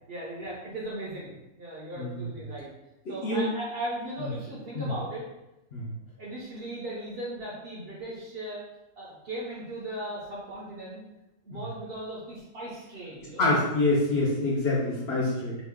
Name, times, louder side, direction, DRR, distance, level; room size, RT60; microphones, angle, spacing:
voice 1, 0.1-1.3 1.6-2.7 3.1-5.2 6.2-8.6 9.0-11.0 11.5-13.4, right 1 dB, 50° right, -5 dB, 0.8 m, -37 dB
voice 2, 3.1-3.4 4.7-4.9 5.7-5.9 11.5-11.6 13.4-15.6, left 2 dB, 55° left, -6 dB, 0.9 m, -26 dB
3.0 x 2.4 x 3.5 m, 0.94 s
omnidirectional pair, 1.5 m